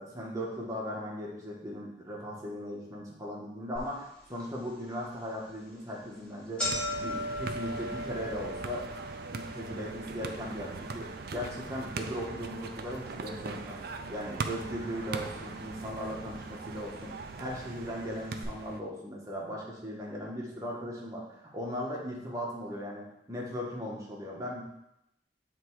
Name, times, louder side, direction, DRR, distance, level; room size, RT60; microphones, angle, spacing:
voice 1, 0.0-6.6 7.0-8.8 9.3-13.8 14.1-24.6, equal, 20° right, -3 dB, 1.4 m, -38 dB
sound 1, 3.8-3.9 4.4-4.5 5.3-5.5 5.8-6.0 6.2-14.4 14.7-15.4 16.2-16.3 17.3-17.4 17.6-17.7 18.3-18.4, left 1 dB, 5° left, 1.8 m, -40 dB
sound 2, 6.6-18.8, right 4 dB, 55° right, 0.5 m, -41 dB
7.9 x 3.5 x 4.7 m, 0.83 s
head